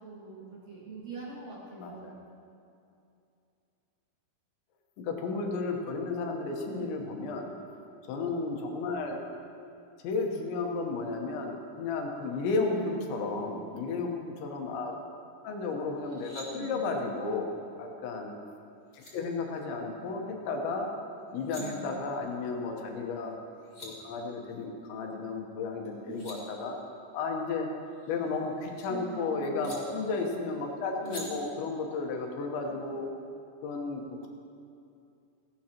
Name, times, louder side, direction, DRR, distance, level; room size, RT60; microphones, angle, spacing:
voice 1, 0.0-2.2 6.6-7.1 12.6-13.3 16.5-17.2 21.6-21.9 26.1-26.5 28.9-29.7 31.0-31.4, right 4 dB, 45° right, -7 dB, 2.8 m, -43 dB
voice 2, 1.8-2.2 5.0-7.5 8.1-9.2 10.0-14.9 15.4-17.5 17.8-18.3 18.9-20.9 21.3-23.4 23.8-26.8 27.1-27.7 28.1-33.1 33.6-34.3, left 3 dB, 80° left, 1 dB, 3.4 m, -33 dB
sound 1, 16.0-16.5 18.5-18.6 18.9-19.1 21.2-21.6 23.3-23.4 23.6-23.9 25.8-26.4 27.9-28.9 29.6-29.8 31.0-31.2, left 1 dB, 25° left, 0.9 m, -46 dB
17.5 x 15.5 x 3.0 m, 2.6 s
omnidirectional pair, 5.3 m